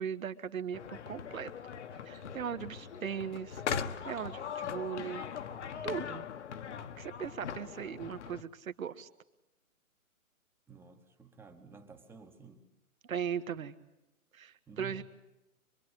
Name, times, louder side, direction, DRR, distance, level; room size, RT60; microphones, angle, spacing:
voice 1, 0.0-1.5 2.0-5.2 5.8-6.2 7.0-9.1 13.0-13.7 14.3-15.0, right 8 dB, 65° right, 11 dB, 1.6 m, -38 dB
sound 1, 0.7-8.4, left 7 dB, 50° left, 1.3 m, -40 dB
voice 2, 10.7-12.6 14.7-15.0, right 6 dB, 5° right, 6 dB, 1.1 m, -51 dB
25.0 x 22.5 x 8.1 m, 0.95 s
hypercardioid pair, 145°, 43 cm